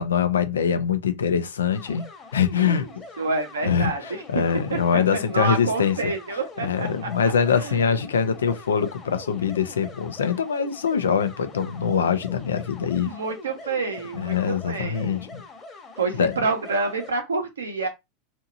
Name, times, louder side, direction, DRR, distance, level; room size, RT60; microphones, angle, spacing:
voice 1, 0.0-2.0 2.3-3.0 3.6-6.1 6.6-13.1 14.1-15.4 16.1-16.3, left 7 dB, 85° left, 0.4 m, -23 dB
sound 1, 1.7-17.1, left 2 dB, 25° left, 1.1 m, -43 dB
voice 2, 3.2-4.2 4.7-7.1 7.5-7.8 13.0-15.2 16.0-17.9, right 3 dB, 85° right, 0.8 m, -28 dB
2.8 x 2.6 x 2.5 m
hypercardioid pair, 95°, 0 cm